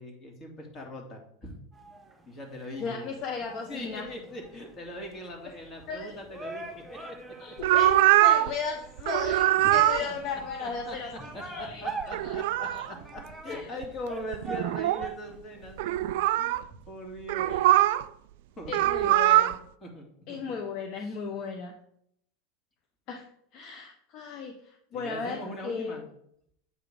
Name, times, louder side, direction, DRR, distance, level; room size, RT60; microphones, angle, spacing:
voice 1, 0.0-1.5 2.2-3.2 3.7-6.8 10.0-11.0 11.3-16.6 16.9-17.7 18.6-19.1 19.8-20.4 21.0-21.2 24.9-26.0, equal, 35° left, 1 dB, 2.4 m, -41 dB
sound 1, 1.7-16.1, right 3 dB, 5° right, 1.2 m, -44 dB
voice 2, 2.8-4.1 5.9-6.2 7.4-11.1 11.4-11.9 12.2-12.4 12.7-12.8 13.5-13.7 17.5-17.6 18.7-19.7 20.3-21.7 23.1-23.3 23.5-25.9, left 5 dB, 55° left, 4 dB, 0.9 m, -35 dB
sound 2, 7.6-8.5 9.0-10.0 12.0-12.9 13.8-13.9 14.3-15.1 15.8-16.6 17.3-18.0 18.7-19.6, right 14 dB, 70° right, 0.3 m, -22 dB
7.8 x 3.9 x 5.1 m, 0.71 s
hypercardioid pair, 95°, 0 cm